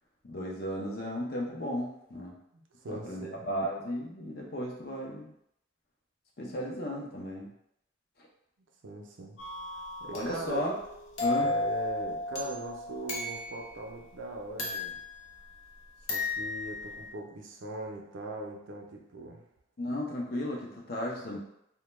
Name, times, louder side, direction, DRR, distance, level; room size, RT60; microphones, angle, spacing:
voice 1, 0.2-2.4 2.9-5.3 6.4-7.5 10.1-10.8 11.2-11.5 19.8-21.4, equal, 50° left, -2 dB, 0.5 m, -34 dB
voice 2, 2.5-3.4 8.8-9.4 10.0-10.6 11.4-15.0 16.1-19.4, right 1 dB, 70° right, 0 dB, 0.5 m, -40 dB
sound 1, 9.4-13.8 14.6-15.7 16.1-17.1, left 2 dB, 90° left, 0.7 m, -34 dB
2.1 x 2.1 x 3.0 m, 0.77 s
head